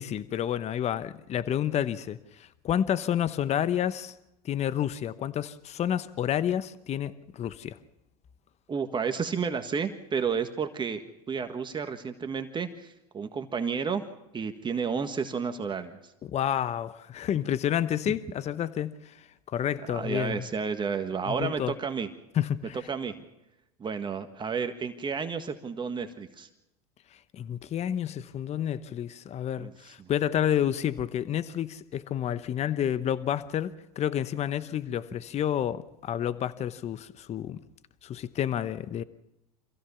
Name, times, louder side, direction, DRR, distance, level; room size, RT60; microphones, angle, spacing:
voice 1, 0.0-4.1 4.4-7.8 16.2-19.2 19.5-20.5 21.3-21.7 22.3-22.8 27.3-37.6 38.0-39.0, left 10 dB, 35° left, 1.0 m, -30 dB
voice 2, 8.7-14.0 14.3-16.0 18.1-18.2 19.9-22.1 22.9-23.2 23.8-26.5 29.6-29.7 30.0-30.1, right 6 dB, 25° right, 1.6 m, -31 dB
26.0 x 15.5 x 7.0 m
hypercardioid pair, 100°, 20 cm